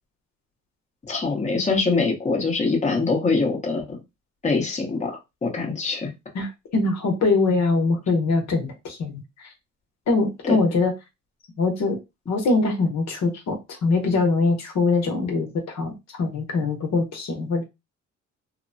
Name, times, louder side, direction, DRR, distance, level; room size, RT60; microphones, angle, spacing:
voice 1, 1.1-4.0 4.4-6.1 10.5-10.6, left 4 dB, 25° left, 1 dB, 0.9 m, -24 dB
voice 2, 6.3-9.5 10.1-10.9 11.6-12.0 12.3-17.6, left 3 dB, 60° left, 3 dB, 0.9 m, -23 dB
2.9 x 2.1 x 2.6 m, 0.23 s
cardioid pair, 90°, 30 cm